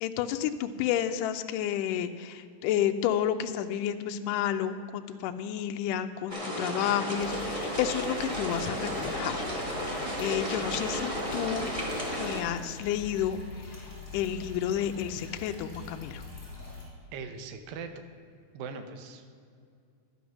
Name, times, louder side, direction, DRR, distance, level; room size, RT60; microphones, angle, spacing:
voice 1, 0.0-9.5 10.2-11.7 12.2-13.4 14.1-16.2, left 10 dB, 80° left, 7 dB, 2.0 m, -30 dB
sound 1, 6.3-12.4, equal, 45° right, 0.4 m, -33 dB
sound 2, 7.2-16.8, left 4 dB, 5° left, 2.8 m, -44 dB
voice 2, 17.1-18.1 18.5-19.4, right 5 dB, 80° right, 8 dB, 2.6 m, -40 dB
11.5 x 9.4 x 6.2 m, 2.3 s
omnidirectional pair, 4.0 m